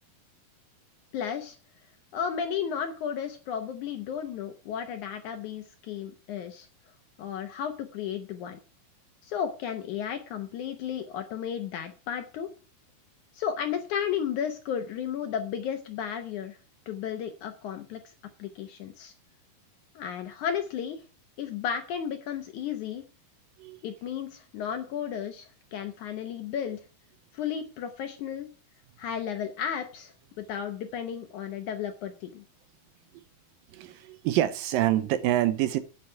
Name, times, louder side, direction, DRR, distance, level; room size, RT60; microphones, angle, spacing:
voice 1, 1.1-1.6 2.1-6.7 7.2-8.6 9.2-12.5 13.3-16.6 16.9-18.1 18.4-19.1 20.0-21.0 21.4-23.0 23.8-26.8 27.3-28.5 29.0-32.4, left 8 dB, 70° left, 7 dB, 1.9 m, -33 dB
voice 2, 33.7-35.8, right 13 dB, 80° right, 12 dB, 2.3 m, -26 dB
8.9 x 8.1 x 5.7 m, 0.36 s
omnidirectional pair, 4.3 m